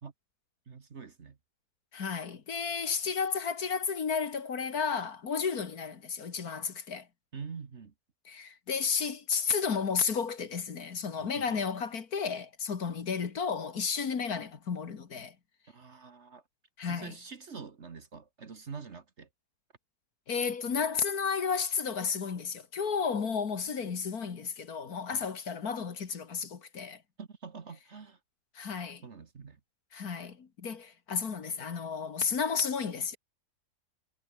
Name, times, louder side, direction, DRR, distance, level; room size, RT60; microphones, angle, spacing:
voice 1, 0.7-1.4 7.3-7.9 11.2-11.6 15.7-16.4 16.9-19.3 25.1-25.3 27.2-28.2 29.0-29.6, right 5 dB, 45° right, 1.6 m, -45 dB
voice 2, 1.9-7.1 8.3-15.4 16.8-17.2 20.3-27.0 28.5-29.0 29.9-33.2, left 6 dB, 60° left, 2.2 m, -32 dB
omnidirectional pair, 1.8 m